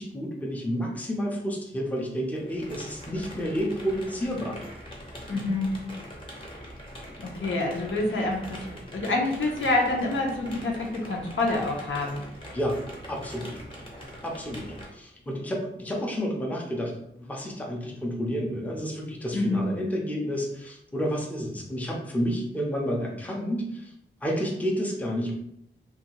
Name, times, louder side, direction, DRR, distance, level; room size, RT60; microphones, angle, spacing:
voice 1, 0.0-4.6 12.5-13.6 14.2-23.9 24.2-25.3, equal, 5° left, -1 dB, 0.6 m, -30 dB
sound 1, 2.4-14.9, equal, 25° left, 0.9 m, -43 dB
voice 2, 5.3-5.7 7.2-8.6 8.9-12.2 19.3-19.7, left 2 dB, 75° left, -1 dB, 0.7 m, -27 dB
2.7 x 2.4 x 2.9 m, 0.76 s
wide cardioid pair, 85°, 21 cm